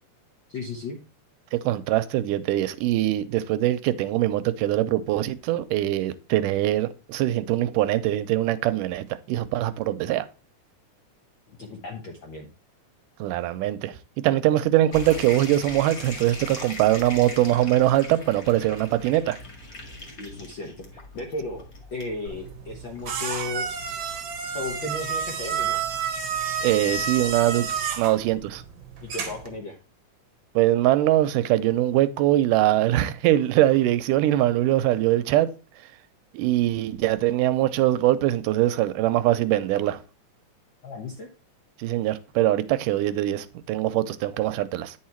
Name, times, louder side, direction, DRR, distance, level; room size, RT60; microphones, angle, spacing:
voice 1, 0.5-1.0 11.5-12.5 20.2-20.8 21.1-21.6 21.9-23.7 24.5-25.8 29.0-29.8 40.8-41.3, left 2 dB, 65° left, 1.2 m, -35 dB
voice 2, 1.5-10.3 13.2-19.4 26.6-27.7 28.0-28.6 30.6-35.5 36.3-40.0 41.8-45.0, right 14 dB, 90° right, 2.2 m, -22 dB
sound 1, 14.9-26.2, left 2 dB, 30° left, 2.0 m, -41 dB
sound 2, 22.3-29.6, right 6 dB, 60° right, 1.3 m, -30 dB
9.9 x 4.8 x 4.4 m
omnidirectional pair, 3.7 m